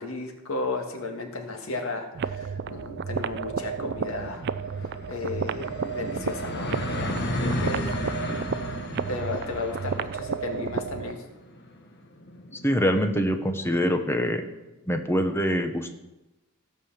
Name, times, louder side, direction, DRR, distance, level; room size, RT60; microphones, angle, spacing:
voice 1, 0.0-4.5 5.1-8.0 9.1-11.2, left 2 dB, 70° left, 3 dB, 1.9 m, -34 dB
sound 1, 1.6-1.7 2.0-2.1 2.3-13.8, left 1 dB, 55° left, 1.5 m, -35 dB
sound 2, 2.1-11.2, right 6 dB, 55° right, 0.4 m, -32 dB
voice 2, 12.6-14.4 14.9-16.0, equal, 10° left, 5 dB, 1.1 m, -24 dB
16.0 x 5.6 x 7.2 m, 1.0 s
head